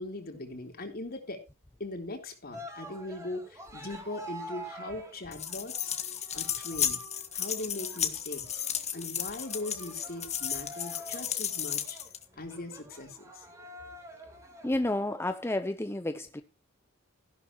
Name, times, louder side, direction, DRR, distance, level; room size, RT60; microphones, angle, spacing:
voice 1, 0.0-1.4 1.8-6.0 6.3-7.0 7.3-8.6 8.9-12.0 12.4-13.5, left 2 dB, 50° left, 3.6 m, -40 dB
Cheering, 2.5-14.9, right 1 dB, 15° right, 3.6 m, -47 dB
sound 1, 5.3-12.2, left 9 dB, 35° left, 1.7 m, -34 dB
voice 2, 14.6-16.4, left 1 dB, 15° left, 0.7 m, -30 dB
15.0 x 11.5 x 3.0 m
head